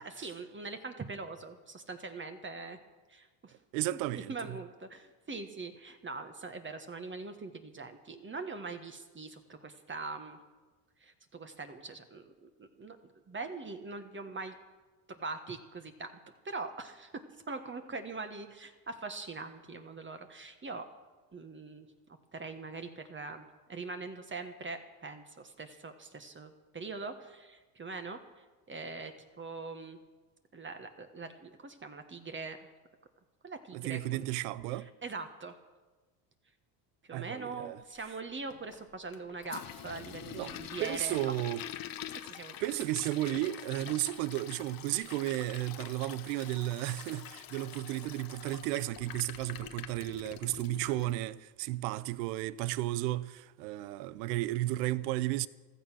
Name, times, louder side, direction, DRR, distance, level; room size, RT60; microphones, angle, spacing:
voice 1, 0.0-2.8 3.1-3.6 4.1-10.4 11.0-13.0 13.3-14.5 15.2-16.1 16.4-17.1 17.5-20.9 21.3-21.9 22.3-28.2 28.7-30.0 30.5-32.6 33.4-34.2 34.7-35.5 37.1-41.2 42.2-42.5, right 3 dB, 25° right, 1.5 m, -42 dB
voice 2, 3.7-4.6 33.7-34.9 37.1-37.8 40.3-40.5 40.8-41.6 42.6-55.5, right 16 dB, 85° right, 0.7 m, -33 dB
Toilet flush, 38.5-51.2, left 11 dB, 45° left, 1.0 m, -46 dB
15.0 x 13.0 x 6.1 m
supercardioid pair, 90°, 48 cm